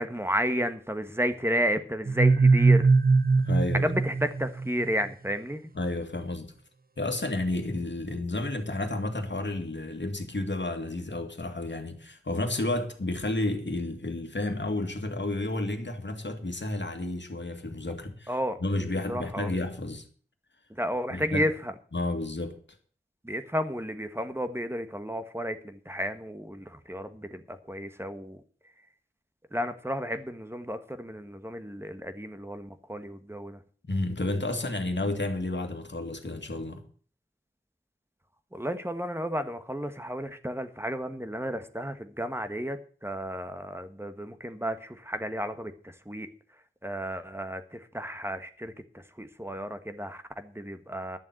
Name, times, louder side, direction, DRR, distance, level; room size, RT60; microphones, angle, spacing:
voice 1, 0.0-2.9 3.7-5.7 18.3-18.6 19.1-19.5 20.7-21.7 23.2-28.4 29.5-33.6 38.5-46.3 46.8-51.2, equal, 10° right, 1.4 m, -32 dB
sound 1, 2.1-4.9, right 4 dB, 45° right, 0.7 m, -21 dB
voice 2, 3.4-3.9 5.7-6.5 7.0-20.1 21.1-21.5 21.9-22.6 33.8-36.8, left 2 dB, 60° left, 2.1 m, -31 dB
11.5 x 7.1 x 7.9 m
wide cardioid pair, 40°, 21 cm